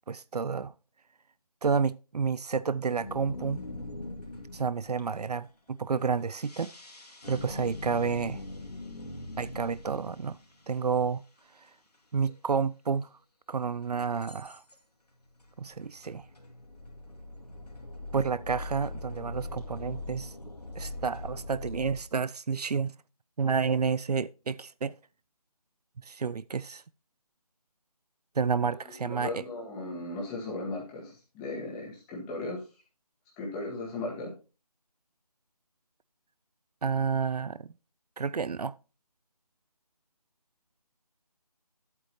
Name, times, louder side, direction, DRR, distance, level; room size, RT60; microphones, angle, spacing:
voice 1, 0.1-0.7 1.6-3.6 4.5-6.7 7.3-8.4 9.4-10.4 10.7-11.2 12.1-13.1 13.5-14.6 15.6-16.2 18.1-20.3 20.8-22.9 23.4-24.9 26.0-26.8 28.4-29.4 36.8-37.7 38.2-38.7, right 5 dB, 80° right, 0.5 m, -30 dB
sound 1, 3.0-5.2 6.2-10.6 12.3-12.4 13.0-13.1 14.2-14.7 15.4-22.0, left 2 dB, 90° left, 2.1 m, -42 dB
voice 2, 29.0-32.6 33.4-34.3, left 2 dB, 10° left, 1.8 m, -36 dB
11.5 x 8.1 x 2.8 m
figure-of-eight pair, 160°, 20 cm